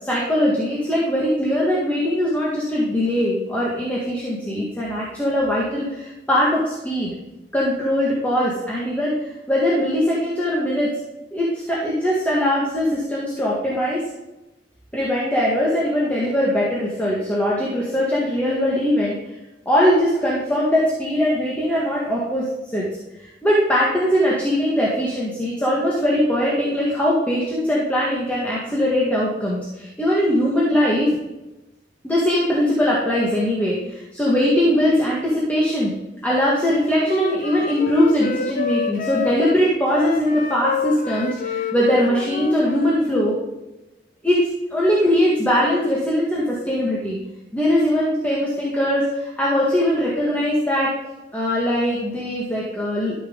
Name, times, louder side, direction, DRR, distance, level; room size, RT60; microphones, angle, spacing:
voice 1, 0.0-7.1 7.5-9.2 9.5-10.9 11.3-14.1 14.9-19.2 19.7-22.5 22.7-22.9 23.4-31.2 32.0-35.9 36.2-43.4 44.2-47.2 47.5-51.0 51.3-53.1, equal, 10° left, -6 dB, 1.9 m, -21 dB
Wind instrument woodwind instrument, 36.7-43.0, left 5 dB, 45° left, 0.7 m, -29 dB
13.5 x 6.1 x 3.9 m, 0.99 s
head